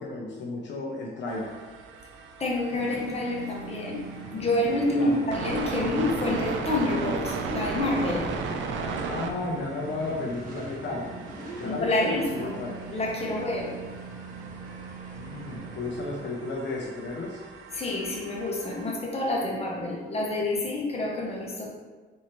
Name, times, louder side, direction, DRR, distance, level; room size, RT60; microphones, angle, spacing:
voice 1, 0.0-1.5 4.9-5.3 9.1-11.1 11.6-12.8 15.1-17.4, left 2 dB, 65° left, -2 dB, 0.6 m, -33 dB
sound 1, 1.3-18.9, right 4 dB, 75° right, 0.4 m, -37 dB
voice 2, 2.4-4.0 4.3-8.3 11.6-12.6 12.9-13.7 17.7-21.7, left 2 dB, 30° left, -2 dB, 0.9 m, -28 dB
sound 2, 2.7-16.3, right 3 dB, 45° right, 1.2 m, -41 dB
4.2 x 2.7 x 3.1 m, 1.3 s
cardioid pair, 90°, 20 cm